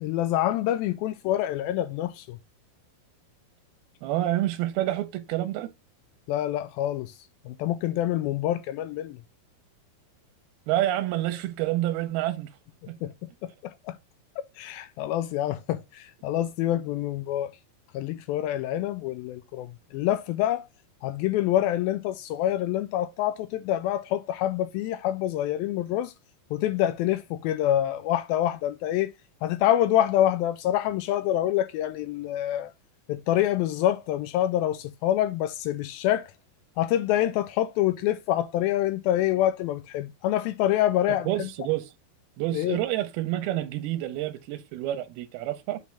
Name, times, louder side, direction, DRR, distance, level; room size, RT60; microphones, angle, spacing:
voice 1, 0.0-2.4 6.3-7.2 7.5-9.2 13.0-14.0 14.6-17.5 17.9-20.7 21.0-26.1 26.5-29.1 29.4-32.7 33.1-36.3 36.8-41.5 42.5-42.8, left 12 dB, 80° left, 2.2 m, -26 dB
voice 2, 4.0-5.7 10.7-12.5 12.9-13.0 41.1-41.8 42.4-45.8, right 14 dB, 90° right, 2.6 m, -28 dB
8.4 x 4.3 x 3.3 m
omnidirectional pair, 4.5 m